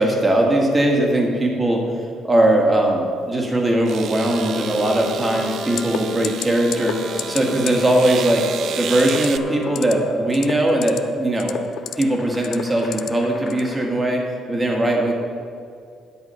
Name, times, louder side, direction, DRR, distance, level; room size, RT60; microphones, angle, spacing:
voice 1, 0.0-8.5 8.8-11.6 12.0-15.1, right 1 dB, 15° right, 1 dB, 1.6 m, -20 dB
sound 1, 3.0-3.1 3.8-9.4, right 9 dB, 60° right, 0.4 m, -32 dB
sound 2, 4.1-10.5 11.3-13.9, left 2 dB, 30° left, 1.6 m, -36 dB
sound 3, 5.8-6.0 6.2-6.5 6.7-6.9 7.2-7.4 7.7-7.8 9.0-9.3 9.6-9.9 10.3-11.0 11.4-12.0 12.4-13.1 13.5-13.7, left 11 dB, 70° left, 0.5 m, -27 dB
10.5 x 8.4 x 5.5 m, 2.3 s
cardioid pair, 150°, 0 cm